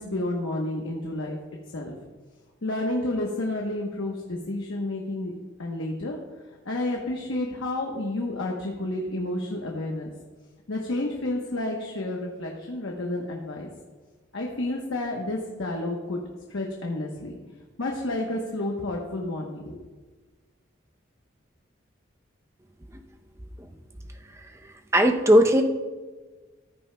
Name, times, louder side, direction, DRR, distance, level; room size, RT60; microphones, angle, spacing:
voice 1, 0.0-1.4 1.7-1.9 2.6-5.3 5.6-6.2 6.7-10.1 10.7-13.7 14.3-16.2 16.5-17.4 17.8-19.8, left 1 dB, 85° left, 0 dB, 1.0 m, -30 dB
voice 2, 24.9-25.6, equal, 15° right, 4 dB, 0.6 m, -17 dB
14.5 x 9.0 x 2.2 m, 1.3 s
head